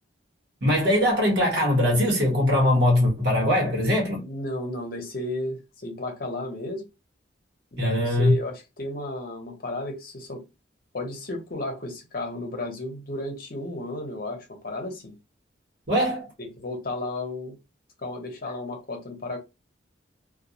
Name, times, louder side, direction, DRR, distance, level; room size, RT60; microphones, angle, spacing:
voice 1, 0.6-4.2 7.8-8.3 15.9-16.3, left 1 dB, 60° right, 1.0 m, -21 dB
voice 2, 4.2-6.9 7.7-10.4 10.9-15.2 16.4-17.6 18.0-19.4, left 1 dB, 50° left, 0.8 m, -33 dB
2.3 x 2.2 x 2.7 m
head